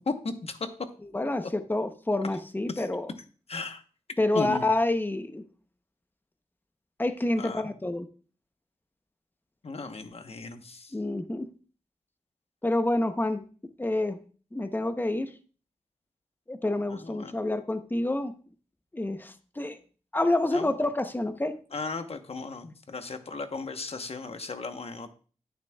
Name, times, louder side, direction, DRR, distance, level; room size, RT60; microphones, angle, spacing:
voice 1, 0.1-0.7 2.7-2.9 3.5-3.8 4.3-4.7 7.4-7.7 9.6-10.9 16.9-17.4 20.5-20.8 21.7-25.1, left 4 dB, 55° left, 8 dB, 1.0 m, -36 dB
voice 2, 1.1-3.1 4.2-5.4 7.0-8.1 10.9-11.5 12.6-13.4 13.8-14.2 14.5-15.3 16.5-18.3 18.9-19.8 20.1-21.6, left 2 dB, 15° left, 9 dB, 0.8 m, -28 dB
10.5 x 8.9 x 2.3 m, 0.39 s
wide cardioid pair, 80°, 12 cm